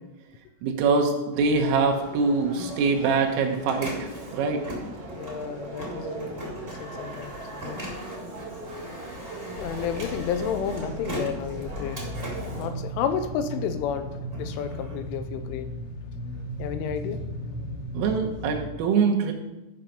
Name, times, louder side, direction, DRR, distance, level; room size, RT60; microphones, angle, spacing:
voice 1, 0.6-4.6 18.0-19.3, right 4 dB, 85° right, 2 dB, 3.8 m, -24 dB
sound 1, 1.3-12.7, right 1 dB, 60° right, 1.7 m, -40 dB
Printer, 2.2-13.6 14.0-15.9, right 1 dB, 30° right, 1.0 m, -40 dB
voice 2, 5.1-7.8 9.2-12.0 12.5-15.7 16.6-17.2, left 8 dB, 85° left, 10 dB, 3.1 m, -32 dB
sound 2, 9.6-18.7, equal, 65° left, 3.0 m, -36 dB
13.5 x 5.8 x 5.2 m, 1.0 s
omnidirectional pair, 5.8 m